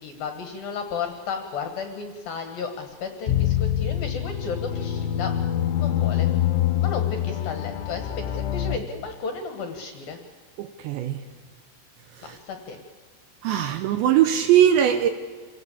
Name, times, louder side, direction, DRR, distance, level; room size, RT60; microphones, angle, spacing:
voice 1, 0.0-5.3 5.8-6.3 6.8-10.2 12.4-12.8, left 5 dB, 60° left, 5 dB, 2.7 m, -33 dB
sound 1, 3.3-8.8, left 11 dB, 75° left, 3.1 m, -25 dB
voice 2, 10.6-11.2 12.2-12.4 13.4-15.1, right 10 dB, 80° right, 8 dB, 2.7 m, -20 dB
27.5 x 18.0 x 8.5 m, 1.5 s
omnidirectional pair, 5.9 m